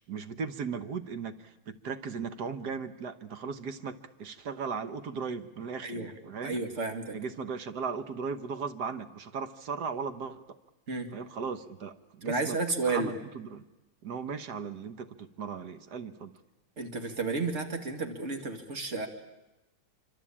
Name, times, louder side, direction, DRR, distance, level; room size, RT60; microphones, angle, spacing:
voice 1, 0.1-6.6 7.1-10.4 11.1-12.6 12.9-13.6 14.0-16.3, right 5 dB, 55° right, 10 dB, 1.5 m, -37 dB
voice 2, 6.4-7.2 10.9-11.1 12.2-13.1 16.8-19.1, right 3 dB, 30° right, 5 dB, 2.5 m, -32 dB
25.5 x 25.5 x 8.7 m, 1.0 s
omnidirectional pair, 2.4 m